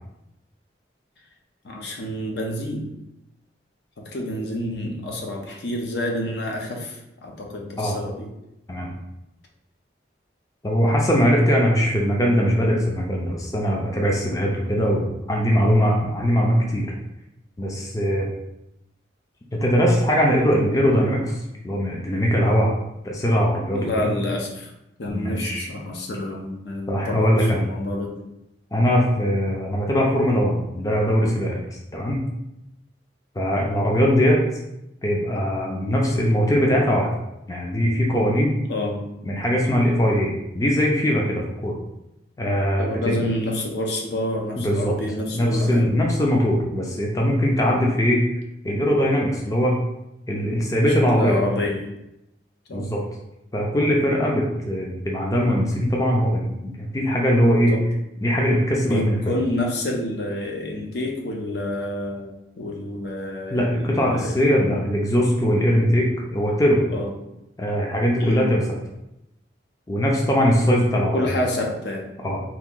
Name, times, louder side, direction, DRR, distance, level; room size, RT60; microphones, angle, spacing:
voice 1, 1.6-2.9 4.1-8.3 23.7-24.7 25.0-28.1 38.7-39.1 42.8-45.9 47.6-47.8 51.1-51.9 52.7-53.0 57.7-57.9 58.8-64.4 66.9-67.1 68.2-68.5 71.1-72.1, left 1 dB, 65° left, 0 dB, 0.6 m, -28 dB
voice 2, 10.6-16.9 17.6-18.3 19.5-22.7 23.0-24.1 25.1-25.7 26.9-27.6 28.7-32.2 33.4-34.4 35.0-37.1 37.5-38.6 39.3-41.7 42.4-43.2 44.6-44.9 45.3-48.2 48.6-49.8 50.3-51.4 52.7-53.0 53.5-57.7 58.2-59.2 63.5-66.9 67.6-68.6 69.9-71.3 72.2-72.4, equal, 20° left, -2 dB, 0.4 m, -21 dB
2.9 x 2.5 x 3.7 m, 0.87 s
head